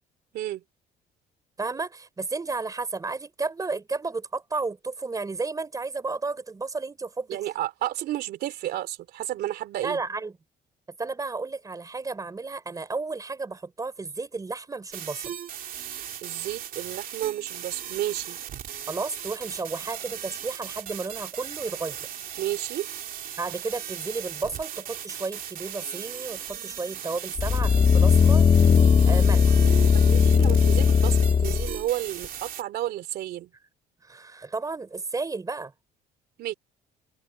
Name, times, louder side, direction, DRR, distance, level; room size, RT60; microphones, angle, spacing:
voice 1, 1.6-7.4 9.8-10.3 11.0-15.3 18.9-22.1 23.4-28.5 29.0-29.7 34.0-35.7, right 3 dB, 20° right, 4.4 m, -32 dB
voice 2, 7.3-10.0 16.2-18.4 22.4-22.9 29.6-33.5 36.4-36.5, right 13 dB, 75° right, 3.4 m, -32 dB
sound 1, 14.9-32.6, right 10 dB, 55° right, 2.7 m, -38 dB
sound 2, 27.4-31.8 32.2-32.3, left 6 dB, 30° left, 1.4 m, -18 dB
open air
cardioid pair, 110°, 17 cm